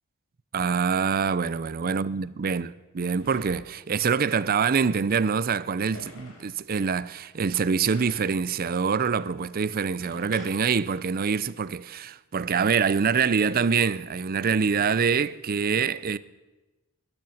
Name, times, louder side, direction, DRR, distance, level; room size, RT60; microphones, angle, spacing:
voice 1, 0.5-16.2, right 6 dB, 40° right, 0.5 m, -25 dB
sound 1, 3.2-3.9 5.9-6.5 7.9-8.4 10.0-10.8, left 1 dB, 65° left, 4.9 m, -45 dB
20.0 x 12.5 x 5.7 m
head